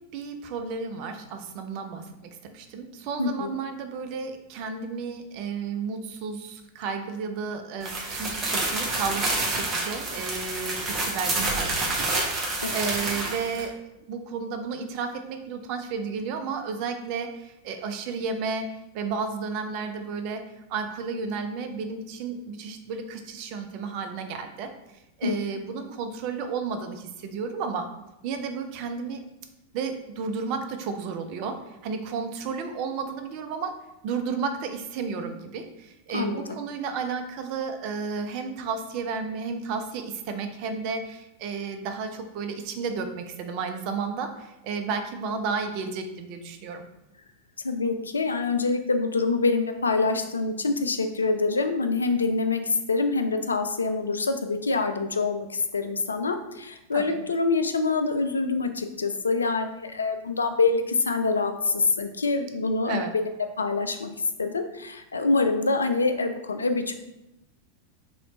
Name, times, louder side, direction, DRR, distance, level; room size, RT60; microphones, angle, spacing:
voice 1, 0.0-13.7 14.1-18.7 18.9-20.4 20.7-24.7 25.2-27.9 28.2-29.2 29.7-31.6 31.8-33.7 34.0-46.8 56.9-57.2 62.8-63.1, right 5 dB, 45° right, 6 dB, 0.5 m, -32 dB
voice 2, 3.2-3.5 12.6-12.8 25.2-25.3 36.1-36.6 47.6-52.6 52.9-64.1 64.4-66.9, left 3 dB, 75° left, 7 dB, 0.3 m, -25 dB
sound 1, 7.8-13.6, right 2 dB, 20° right, 0.9 m, -28 dB
3.1 x 3.0 x 3.7 m, 0.91 s
figure-of-eight pair, 90°, 0 cm